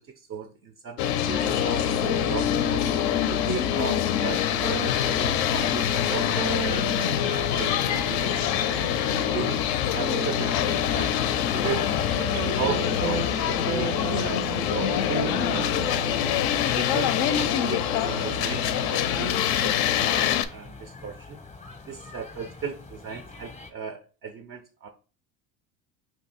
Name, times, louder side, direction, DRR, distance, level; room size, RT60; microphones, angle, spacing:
voice 1, 0.0-2.8 3.3-8.4 9.0-11.8 12.5-15.7 16.2-21.4 21.9-24.9, right 6 dB, 30° right, 7 dB, 0.4 m, -37 dB
sound 1, 1.0-20.4, left 11 dB, 55° left, 0.5 m, -25 dB
sound 2, 1.4-20.4, right 2 dB, 85° right, 0.8 m, -34 dB
sound 3, 5.2-23.7, left 4 dB, 15° left, 0.7 m, -44 dB
2.7 x 2.6 x 4.2 m, 0.36 s
supercardioid pair, 95°, 47 cm